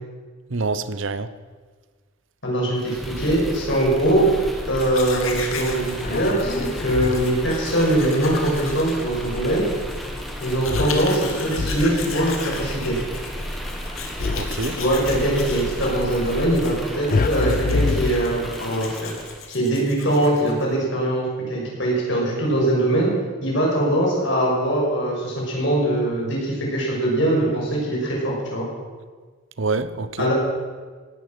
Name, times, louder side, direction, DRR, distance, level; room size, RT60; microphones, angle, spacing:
voice 1, 0.5-1.3 14.4-14.8 29.6-30.3, right 3 dB, 70° right, 13 dB, 0.8 m, -26 dB
voice 2, 2.4-4.3 4.7-9.6 10.4-13.0 14.8-19.1 19.5-23.1 23.4-28.7 30.2-30.3, right 1 dB, 60° left, -3 dB, 6.2 m, -22 dB
sound 1, 2.8-19.5, equal, ahead, 1.6 m, -33 dB
Domestic sounds home sounds, 4.6-20.7, left 5 dB, 80° left, 2.3 m, -37 dB
sound 2, 6.0-7.5 10.7-12.2 14.2-15.4 17.1-18.8, left 3 dB, 40° left, 0.4 m, -27 dB
17.5 x 12.0 x 6.1 m, 1.5 s
head